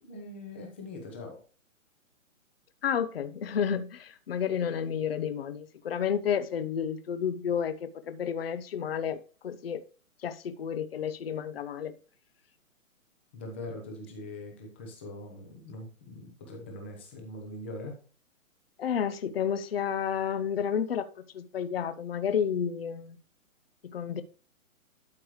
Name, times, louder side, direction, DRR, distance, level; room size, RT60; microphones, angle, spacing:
voice 1, 0.0-1.4 13.3-18.0, left 2 dB, 10° left, 0.7 m, -42 dB
voice 2, 2.8-9.8 10.2-11.9 18.8-23.2 23.8-24.2, left 8 dB, 45° left, 0.7 m, -31 dB
12.0 x 4.8 x 3.1 m
hypercardioid pair, 170°, 41 cm